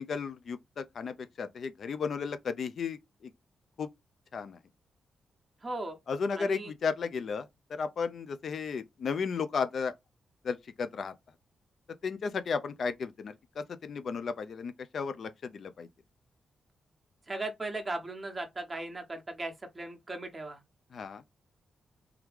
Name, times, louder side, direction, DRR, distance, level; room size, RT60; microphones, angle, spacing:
voice 1, 0.0-3.3 3.8-3.9 4.3-4.6 6.1-9.9 10.4-11.1 12.0-15.9 20.9-21.2, left 5 dB, 60° left, 0.4 m, -34 dB
voice 2, 5.6-6.0 6.3-6.7 17.3-20.6, right 2 dB, 20° right, 1.1 m, -37 dB
3.4 x 3.1 x 3.5 m
cardioid pair, 115°, 0 cm